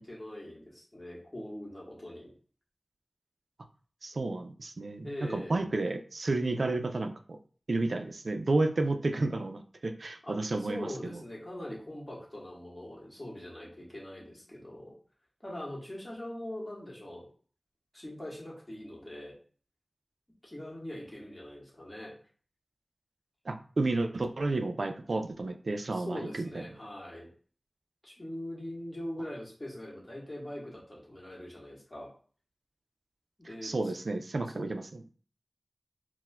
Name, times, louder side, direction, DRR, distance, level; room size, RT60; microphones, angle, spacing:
voice 1, 0.0-2.3 5.0-5.7 10.2-15.0 15.4-17.3 17.9-19.3 20.4-22.1 25.9-27.3 28.0-32.1 33.4-33.9 34.5-34.6, left 1 dB, 25° left, -5 dB, 1.3 m, -42 dB
voice 2, 4.0-7.4 7.7-10.9 23.5-26.6 33.6-35.1, right 2 dB, 80° right, 7 dB, 0.3 m, -31 dB
4.2 x 2.1 x 2.2 m, 0.42 s
wide cardioid pair, 70°, 0 cm